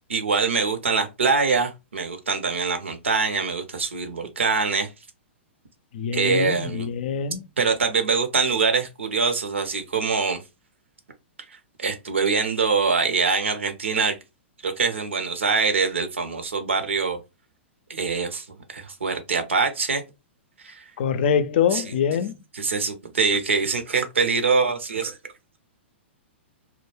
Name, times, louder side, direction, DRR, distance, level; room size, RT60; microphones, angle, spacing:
voice 1, 0.1-4.9 6.1-6.9 7.6-10.4 11.8-14.2 14.6-17.2 17.9-20.0 20.6-20.8 21.7-21.8 22.5-25.2, right 4 dB, 80° right, 0.6 m, -24 dB
voice 2, 5.9-7.4 21.0-22.4, left 7 dB, 55° left, 0.4 m, -24 dB
2.2 x 2.0 x 3.1 m
hypercardioid pair, 115°, 6 cm